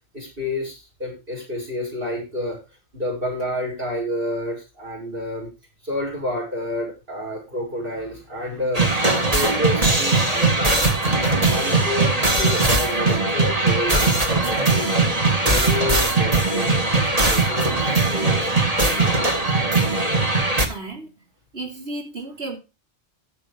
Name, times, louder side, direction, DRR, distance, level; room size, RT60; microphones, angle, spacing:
voice 1, 0.1-2.6 2.9-5.5 5.8-8.8 9.3-14.9 15.3-17.7 18.1-19.4, left 1 dB, 50° right, 6.4 m, -30 dB
sound 1, 8.7-20.7, right 2 dB, 35° right, 2.0 m, -20 dB
voice 2, 20.7-21.2 21.5-22.6, right 2 dB, 70° right, 4.1 m, -33 dB
15.0 x 7.3 x 3.4 m
omnidirectional pair, 1.2 m